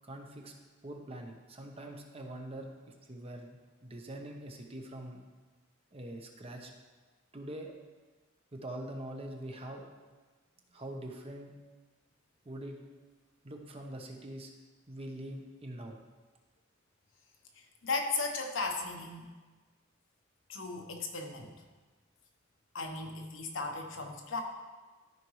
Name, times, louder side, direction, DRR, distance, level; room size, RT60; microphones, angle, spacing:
voice 1, 0.0-0.5 0.8-5.2 5.9-6.7 7.3-7.7 8.5-9.9 10.7-11.6 12.4-12.8 13.4-14.5 14.9-16.0, right 1 dB, 30° right, 2 dB, 0.9 m, -44 dB
voice 2, 17.6-19.3 20.5-21.5 22.7-24.4, left 3 dB, 75° left, 3 dB, 1.1 m, -36 dB
13.5 x 5.1 x 3.2 m, 1.3 s
head